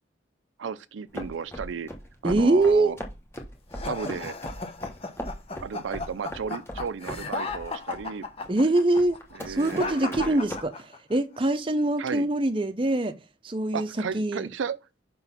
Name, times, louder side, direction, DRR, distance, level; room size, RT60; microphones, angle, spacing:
voice 1, 0.6-1.9 2.2-3.0 3.8-4.3 5.6-8.3 9.4-10.4 12.0-12.3 13.7-14.8, right 6 dB, 90° right, 0.4 m, -34 dB
sound 1, 1.1-10.6, equal, 15° left, 1.0 m, -39 dB
voice 2, 2.2-3.0 8.5-9.2 9.5-13.2 13.4-13.9 14.1-14.5, right 2 dB, 30° right, 0.6 m, -24 dB
sound 2, 3.7-11.2, left 3 dB, 30° left, 0.8 m, -35 dB
5.3 x 4.0 x 5.7 m
head